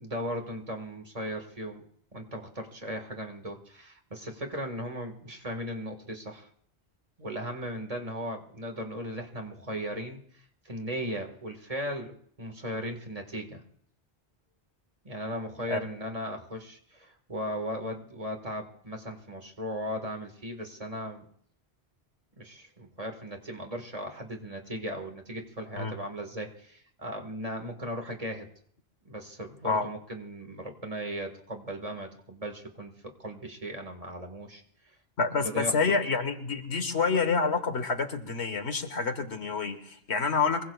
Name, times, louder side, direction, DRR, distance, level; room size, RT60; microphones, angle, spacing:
voice 1, 0.0-1.8 2.1-6.5 7.2-13.6 15.0-21.3 22.4-28.5 29.0-35.0 35.3-35.9, equal, 35° right, 3 dB, 1.9 m, -37 dB
voice 2, 35.2-40.6, left 4 dB, 80° left, 8 dB, 1.7 m, -28 dB
25.0 x 23.0 x 2.4 m, 0.63 s
omnidirectional pair, 1.1 m